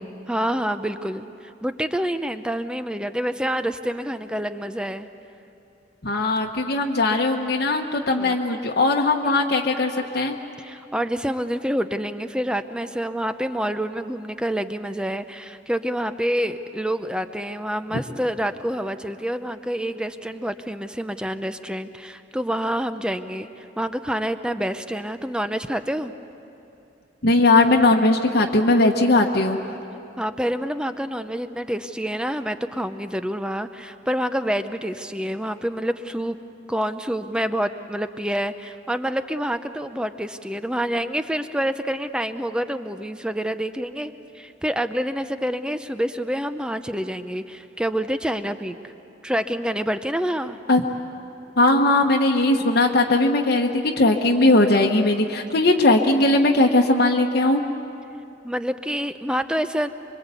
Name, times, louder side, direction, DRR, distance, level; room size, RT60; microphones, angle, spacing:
voice 1, 0.3-5.1 8.1-8.6 10.6-23.5 23.8-26.1 30.2-36.4 36.7-48.9 49.2-50.6 58.4-59.9, equal, 5° right, 10 dB, 0.7 m, -27 dB
voice 2, 6.0-10.3 27.2-29.6 50.7-50.8 51.6-57.7, left 2 dB, 55° left, 1 dB, 1.2 m, -19 dB
25.5 x 23.0 x 8.3 m, 2.7 s
head